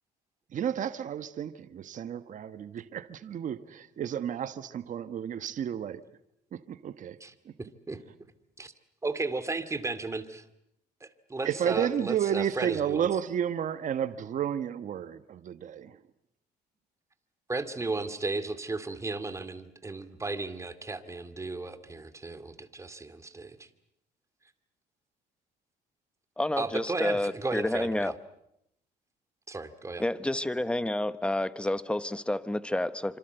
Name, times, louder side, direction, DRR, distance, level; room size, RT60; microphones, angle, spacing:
voice 1, 0.5-6.0 6.5-7.2 7.4-7.5 11.4-16.0, right 9 dB, 50° right, 11 dB, 1.3 m, -32 dB
voice 2, 7.2-8.0 8.6-8.7 9.0-10.4 11.0-13.1 17.5-23.7 26.6-28.1 29.5-30.0, right 3 dB, 15° right, 10 dB, 2.3 m, -35 dB
voice 3, 26.4-28.1 30.0-33.2, left 1 dB, 5° left, 14 dB, 1.2 m, -29 dB
26.5 x 26.5 x 8.0 m, 0.81 s
cardioid pair, 110°, 17 cm